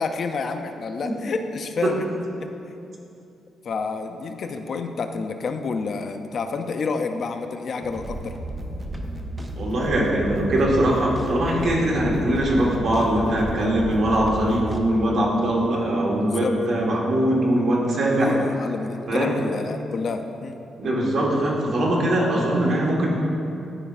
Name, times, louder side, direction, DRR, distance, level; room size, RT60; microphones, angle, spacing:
voice 1, 0.0-2.0 2.4-2.5 3.6-8.3 16.2-16.5 18.2-20.6, left 4 dB, 45° left, 6 dB, 0.3 m, -29 dB
sound 1, 7.8-14.8, right 1 dB, 20° right, 0.5 m, -33 dB
voice 2, 9.6-18.3 19.1-19.3 20.8-23.1, right 1 dB, 55° right, -3 dB, 1.2 m, -21 dB
12.0 x 4.9 x 2.4 m, 2.7 s
wide cardioid pair, 165°, 0 cm